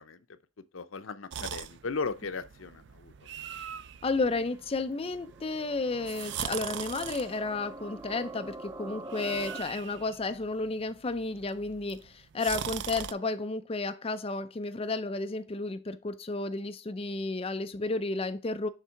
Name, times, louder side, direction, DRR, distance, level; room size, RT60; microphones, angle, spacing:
voice 1, 0.0-3.3, left 4 dB, 85° left, 0.7 m, -37 dB
sound 1, 1.3-13.1, right 9 dB, 60° right, 0.4 m, -42 dB
voice 2, 4.0-18.7, left 3 dB, 30° left, 0.5 m, -32 dB
sound 2, 4.5-9.6, right 2 dB, 15° right, 0.6 m, -45 dB
6.6 x 3.7 x 4.4 m
head